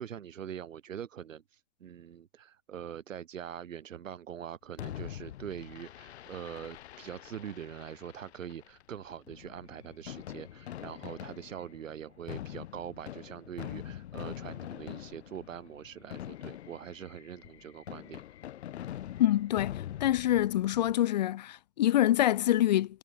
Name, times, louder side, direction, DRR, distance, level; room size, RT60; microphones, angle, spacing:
voice 1, 0.0-18.2, right 9 dB, 85° right, 1.0 m, -43 dB
Fireworks, 4.8-20.9, left 12 dB, 60° left, 2.1 m, -44 dB
voice 2, 19.2-23.0, left 13 dB, 35° left, 0.4 m, -26 dB
hypercardioid pair, 135°, 38 cm